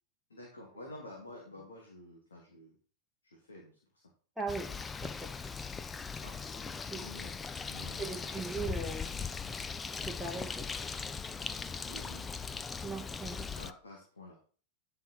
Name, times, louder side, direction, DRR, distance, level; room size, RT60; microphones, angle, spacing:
voice 1, 0.3-2.8 3.2-4.0 6.1-6.4 6.8-7.4 7.7-8.6 9.2-9.3 11.9-12.3 13.3-14.6, left 1 dB, 70° left, -1 dB, 2.8 m, -51 dB
voice 2, 4.4-4.7 5.0-5.4 6.8-7.1 8.0-9.1 10.0-10.7 12.8-13.5, right 3 dB, 5° right, -2 dB, 1.4 m, -39 dB
Bird, 4.5-13.7, left 5 dB, 15° left, 0.6 m, -39 dB
11.5 x 5.9 x 4.4 m, 0.41 s
figure-of-eight pair, 90°, 0 cm